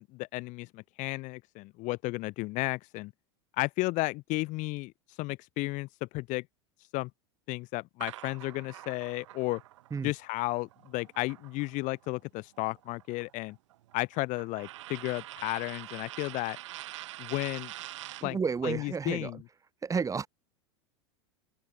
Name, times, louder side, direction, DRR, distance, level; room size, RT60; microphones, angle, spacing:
voice 1, 0.0-3.1 3.6-4.9 5.2-6.4 6.9-7.1 7.5-9.6 10.0-13.6 13.9-16.6 17.2-17.7 18.2-19.4, left 22 dB, 50° left, 6.9 m, -33 dB
sound 1, 8.0-12.1 12.4-18.3, right 15 dB, 70° right, 3.8 m, -45 dB
voice 2, 18.2-19.3 19.8-20.3, right 5 dB, 20° right, 3.8 m, -31 dB
hypercardioid pair, 90°, 16 cm